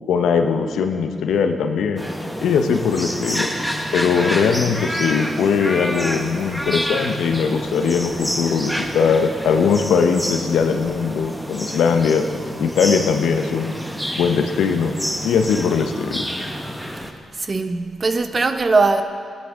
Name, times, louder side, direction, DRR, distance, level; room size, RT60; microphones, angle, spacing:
voice 1, 0.1-2.0 2.4-3.5 3.9-12.3 12.6-13.7 14.2-14.9 15.2-16.2, left 6 dB, 80° left, 0.8 m, -20 dB
sound 1, 2.0-17.1, equal, ahead, 1.2 m, -28 dB
voice 2, 17.4-19.0, right 3 dB, 40° right, 0.9 m, -19 dB
16.5 x 10.5 x 3.7 m
supercardioid pair, 55°, 0 cm